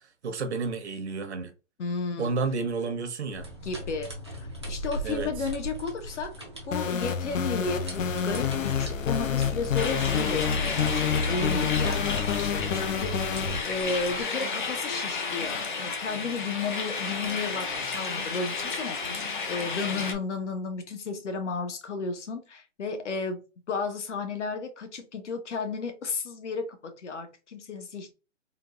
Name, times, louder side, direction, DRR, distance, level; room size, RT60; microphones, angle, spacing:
voice 1, 0.0-1.5 2.2-3.5 5.0-5.5, right 4 dB, 60° right, 0.8 m, -31 dB
voice 2, 1.8-2.4 3.6-4.1 4.4-6.3 6.7-23.4 23.7-28.1, left 4 dB, 65° left, 1.0 m, -33 dB
sound 1, 3.3-14.2, right 1 dB, 25° right, 0.4 m, -41 dB
sound 2, 6.7-13.6, left 6 dB, 80° left, 0.6 m, -28 dB
sound 3, 9.8-20.1, left 4 dB, 40° left, 0.6 m, -32 dB
3.8 x 2.4 x 2.4 m
hypercardioid pair, 165°, 38 cm